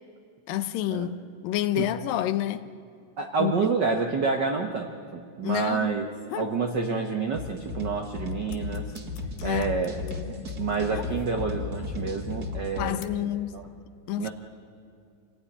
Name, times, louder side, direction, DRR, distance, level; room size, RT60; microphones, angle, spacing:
voice 1, 0.5-1.2 1.4-2.6 3.4-3.5 5.4-6.0 9.4-9.7 10.0-10.5 12.8-14.3, left 12 dB, 85° left, 2.6 m, -29 dB
voice 2, 3.2-8.9 9.4-9.9 10.3-13.6 14.2-14.3, right 5 dB, 75° right, 1.0 m, -29 dB
sound 1, 6.0-6.7 7.1-7.8 8.0-11.6 12.4-13.0, left 9 dB, 70° left, 1.9 m, -42 dB
sound 2, 7.3-12.9, left 4 dB, 35° right, 1.9 m, -35 dB
27.0 x 17.5 x 10.0 m
omnidirectional pair, 3.9 m